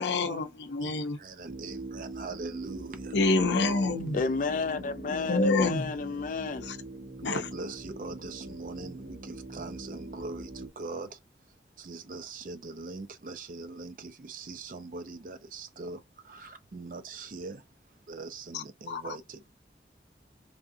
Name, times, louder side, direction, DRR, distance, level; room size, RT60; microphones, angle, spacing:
voice 1, 0.0-1.2 3.1-4.2 5.1-5.9 6.6-6.8 7.2-7.5 18.5-19.2, left 3 dB, 85° left, 0.6 m, -28 dB
voice 2, 1.2-3.0 7.2-10.5 10.8-11.1 11.8-16.0 16.3-17.6 18.1-19.5, right 3 dB, 50° right, 0.4 m, -41 dB
sound 1, 1.5-10.7, right 2 dB, 75° right, 1.0 m, -42 dB
voice 3, 4.1-6.7, left 4 dB, 45° left, 0.3 m, -31 dB
3.4 x 2.6 x 2.6 m
head